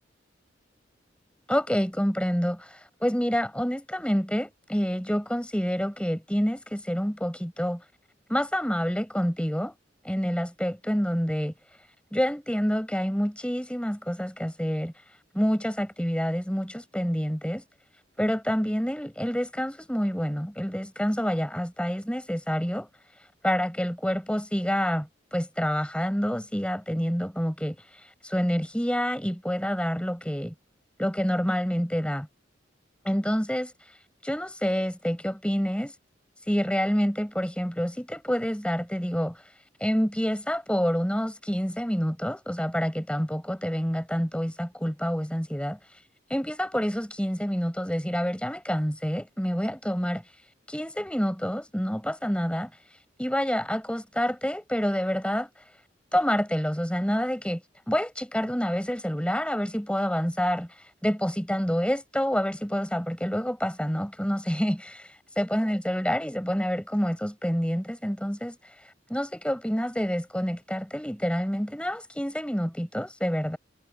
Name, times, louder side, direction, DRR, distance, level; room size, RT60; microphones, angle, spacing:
voice 1, 1.5-7.8 8.3-9.7 10.0-11.5 12.1-14.9 15.3-17.6 18.2-22.9 23.4-30.5 31.0-32.3 33.0-33.7 34.2-35.9 36.5-39.4 39.8-45.8 46.3-50.2 50.7-52.7 53.2-55.5 56.1-57.6 57.9-73.6, equal, 5° left, 6.6 m, -28 dB
head